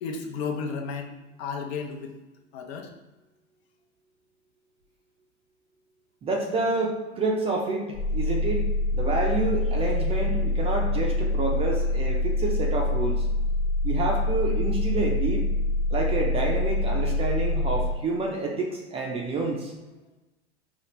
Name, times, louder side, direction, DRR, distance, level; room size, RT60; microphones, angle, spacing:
voice 1, 0.0-2.2 2.5-2.9, left 5 dB, 65° left, 3 dB, 0.8 m, -33 dB
voice 2, 6.2-8.6 8.9-13.2 13.8-15.5 15.9-19.7, right 3 dB, 15° right, 0 dB, 0.4 m, -28 dB
sound 1, 7.9-18.0, left 2 dB, 10° left, 0.7 m, -25 dB
4.9 x 2.5 x 3.0 m, 1.1 s
hypercardioid pair, 120°, 35 cm